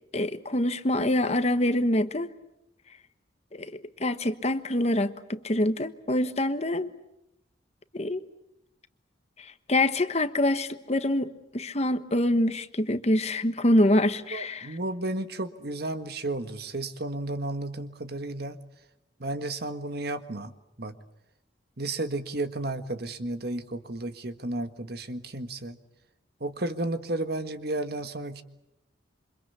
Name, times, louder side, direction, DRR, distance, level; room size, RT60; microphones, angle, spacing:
voice 1, 0.1-2.3 3.5-6.9 7.9-8.3 9.4-14.8, left 1 dB, 35° left, 11 dB, 1.2 m, -25 dB
voice 2, 14.3-18.6 19.2-20.5 20.8-20.9 21.8-25.8 26.4-28.4, right 2 dB, 55° right, 9 dB, 1.7 m, -33 dB
28.0 x 25.5 x 8.4 m, 0.85 s
head